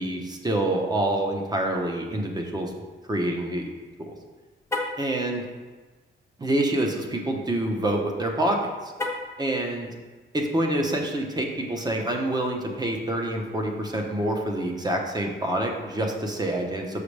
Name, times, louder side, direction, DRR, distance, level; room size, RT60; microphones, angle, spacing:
voice 1, 0.0-2.7 3.1-3.7 4.0-4.1 5.0-5.4 6.4-8.9 9.4-9.9 10.3-17.0, right 1 dB, 20° right, 2 dB, 0.8 m, -27 dB
Car, 4.6-5.1 8.9-9.4, left 2 dB, 15° left, 0.7 m, -30 dB
6.6 x 6.2 x 3.3 m, 1.3 s
wide cardioid pair, 155°, 21 cm